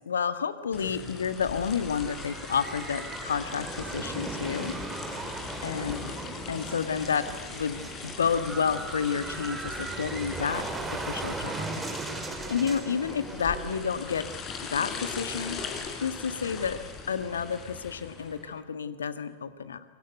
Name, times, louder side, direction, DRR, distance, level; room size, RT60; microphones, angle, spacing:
voice 1, 0.1-4.7 5.6-6.1 6.5-7.2 7.5-10.6 10.9-11.6 12.5-14.2 14.7-15.6 16.0-16.8 17.1-19.8, left 6 dB, 70° left, 11 dB, 1.7 m, -30 dB
sound 1, 0.7-18.4, left 5 dB, 30° left, 4.8 m, -41 dB
sound 2, 1.0-18.6, right 3 dB, 15° right, 3.7 m, -39 dB
sound 3, 7.2-13.7, right 7 dB, 30° right, 2.3 m, -48 dB
27.5 x 24.0 x 8.0 m, 1.3 s
figure-of-eight pair, 90°, 0 cm